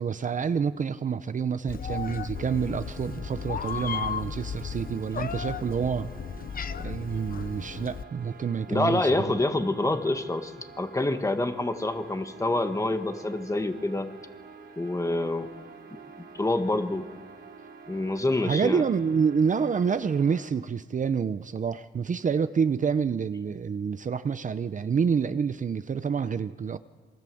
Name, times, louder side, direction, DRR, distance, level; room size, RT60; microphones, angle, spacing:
voice 1, 0.0-6.1 6.8-9.3 18.4-26.8, right 6 dB, 45° right, 12 dB, 0.7 m, -28 dB
Meow, 1.7-8.0, left 7 dB, 50° left, 0.9 m, -35 dB
sound 1, 2.3-20.5, right 4 dB, 65° right, 4.2 m, -48 dB
voice 2, 8.7-14.1 14.8-15.5 15.9-17.1 17.9-18.8, left 2 dB, 15° left, 7 dB, 1.7 m, -27 dB
27.5 x 24.0 x 7.8 m, 1.5 s
wide cardioid pair, 135°, 19 cm